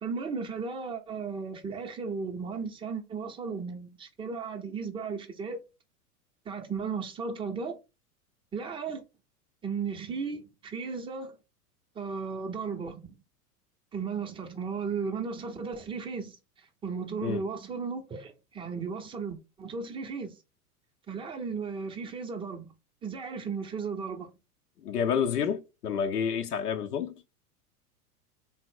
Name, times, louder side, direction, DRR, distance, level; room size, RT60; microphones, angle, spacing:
voice 1, 0.0-5.6 6.5-7.8 8.5-9.0 9.6-11.4 11.9-13.1 13.9-20.3 21.1-22.7 23.0-24.3, right 5 dB, 10° right, 0.5 m, -35 dB
voice 2, 24.8-27.1, left 7 dB, 85° left, 0.6 m, -29 dB
3.7 x 2.0 x 4.3 m
figure-of-eight pair, 90°, 46 cm